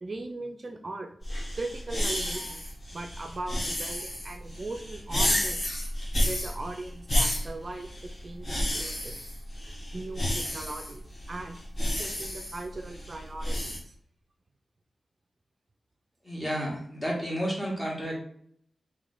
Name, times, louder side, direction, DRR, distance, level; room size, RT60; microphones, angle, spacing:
voice 1, 0.0-1.2 1.6-2.7 2.9-5.6 6.2-9.2 9.6-11.6 11.9-13.9, right 2 dB, 45° right, 4 dB, 0.4 m, -39 dB
sound 1, 1.2-13.8, equal, 45° left, 1.3 m, -31 dB
voice 2, 16.2-18.2, equal, 20° left, -3 dB, 1.7 m, -31 dB
3.2 x 3.2 x 3.9 m, 0.62 s
wide cardioid pair, 80°, 0 cm